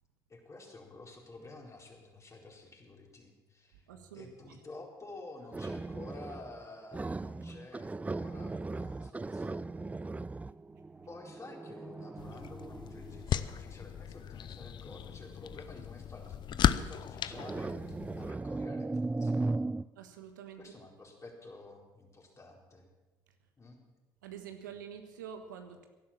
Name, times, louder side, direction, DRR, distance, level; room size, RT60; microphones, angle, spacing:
voice 1, 0.3-3.9 4.1-9.9 11.1-19.7 20.6-22.9 23.6-23.8, left 2 dB, 30° left, 0 dB, 4.3 m, -50 dB
voice 2, 3.9-4.6 20.0-20.7 24.2-25.9, right 8 dB, 85° right, 6 dB, 1.4 m, -47 dB
sound 1, 5.5-6.6 6.9-13.8 14.7-15.0 17.3-19.8, right 3 dB, 15° right, 0.4 m, -37 dB
sound 2, 12.2-18.3, left 10 dB, 50° left, 0.7 m, -35 dB
16.0 x 11.5 x 7.4 m, 1.2 s
hypercardioid pair, 55°, 10 cm